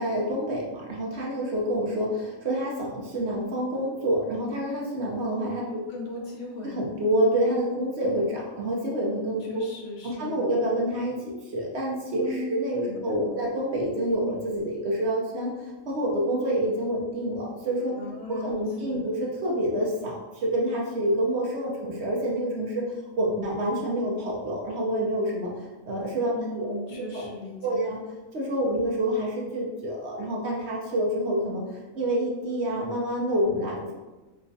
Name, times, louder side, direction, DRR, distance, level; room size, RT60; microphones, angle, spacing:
voice 1, 0.0-5.8 6.6-9.6 10.0-17.9 18.3-27.3 27.6-28.0 28.3-33.9, right 1 dB, 60° right, -3 dB, 0.9 m, -28 dB
voice 2, 5.3-6.7 9.5-10.5 12.2-12.6 12.9-13.4 18.0-19.1 26.3-27.9, left 1 dB, 65° left, -1 dB, 0.9 m, -38 dB
4.6 x 2.2 x 2.6 m, 1.1 s
omnidirectional pair, 1.4 m